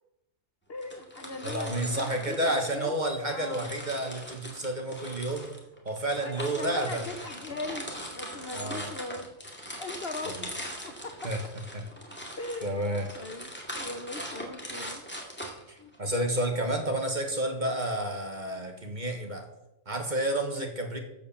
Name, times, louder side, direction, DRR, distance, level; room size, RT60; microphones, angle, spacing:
voice 1, 0.7-3.7 6.2-9.3 9.8-11.3 12.4-12.8 13.1-15.0 20.6-20.7, left 2 dB, 50° left, 7 dB, 1.0 m, -40 dB
sound 1, 0.8-3.1 3.5-16.2, equal, 10° left, 2.2 m, -41 dB
voice 2, 1.4-5.5 5.8-7.0 8.5-8.9 10.2-10.5 11.2-11.4 11.7-11.8 12.6-13.1 15.7-19.5 19.8-21.0, right 1 dB, 35° right, 4 dB, 1.6 m, -30 dB
14.0 x 5.1 x 7.1 m, 0.90 s
omnidirectional pair, 1.4 m